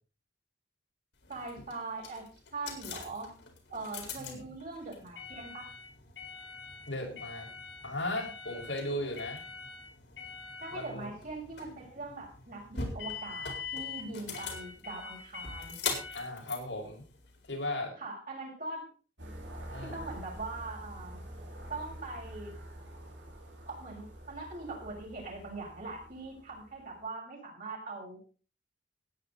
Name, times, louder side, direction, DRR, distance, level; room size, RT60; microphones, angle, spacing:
sound 1, 1.2-17.7, left 5 dB, 70° left, 4.3 m, -42 dB
voice 1, 1.3-2.2 2.5-3.3 3.7-5.7 10.6-15.8 18.0-18.9 19.8-21.2 21.7-22.5 23.6-28.2, right 3 dB, 50° right, -2 dB, 6.8 m, -41 dB
voice 2, 6.9-7.5 7.8-9.4 10.7-11.1 16.1-17.0 17.5-17.9 19.7-20.0, left 1 dB, 90° left, 0 dB, 5.7 m, -36 dB
sound 2, 19.2-27.0, right 1 dB, 80° right, 4.8 m, -47 dB
17.0 x 9.8 x 4.2 m, 0.38 s
head